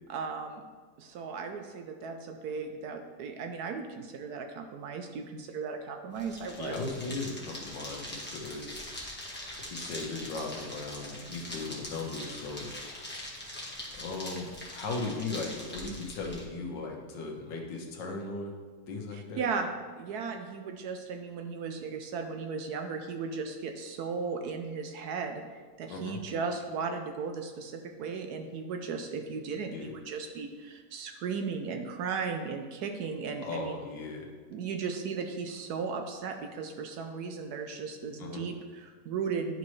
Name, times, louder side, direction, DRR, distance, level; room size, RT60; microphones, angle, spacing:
voice 1, 0.1-0.6 1.0-6.8 19.1-19.7 20.0-33.7 34.5-39.6, right 5 dB, 70° right, 5 dB, 1.0 m, -36 dB
sound 1, 6.1-16.4, left 1 dB, 5° left, 1.1 m, -42 dB
voice 2, 6.6-8.8 9.7-12.7 13.9-18.5 18.9-19.5 25.9-26.2 29.6-29.9 33.4-34.3 38.2-38.4, left 3 dB, 85° left, 1 dB, 1.8 m, -37 dB
10.5 x 5.2 x 3.2 m, 1.5 s
omnidirectional pair, 1.9 m